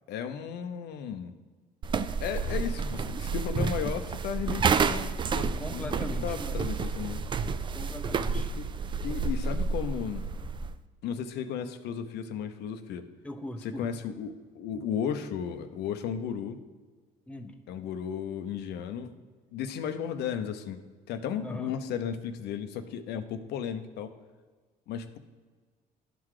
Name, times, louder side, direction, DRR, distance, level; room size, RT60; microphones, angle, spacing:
voice 1, 0.1-1.3 2.2-7.2 8.6-8.7 9.0-10.3 11.0-13.1 13.6-16.6 17.7-19.1 19.5-20.8 21.1-24.1 24.9-25.2, left 8 dB, 75° left, 8 dB, 0.6 m, -34 dB
sound 1, 1.8-10.7, right 5 dB, 30° right, 0.3 m, -30 dB
voice 2, 5.6-6.7 7.7-8.5 13.2-13.9 17.3-17.6 21.4-21.7, left 1 dB, 5° left, 5 dB, 0.7 m, -40 dB
11.0 x 3.8 x 4.8 m, 1.4 s
cardioid pair, 110°, 17 cm